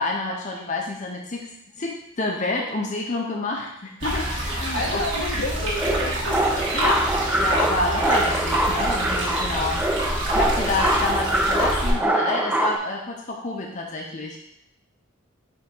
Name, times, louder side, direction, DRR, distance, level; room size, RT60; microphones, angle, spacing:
voice 1, 0.0-1.5 1.8-5.0 5.4-5.5 6.7-7.0 7.3-9.8 10.3-14.4, left 2 dB, 35° left, 0 dB, 0.6 m, -28 dB
sound 1, 4.0-11.9, right 1 dB, 60° right, 1.6 m, -27 dB
voice 2, 4.7-6.5, left 1 dB, 75° left, 0 dB, 1.2 m, -29 dB
sound 2, 5.8-12.8, right 1 dB, 5° right, 0.4 m, -24 dB
5.2 x 3.6 x 5.3 m, 0.74 s
head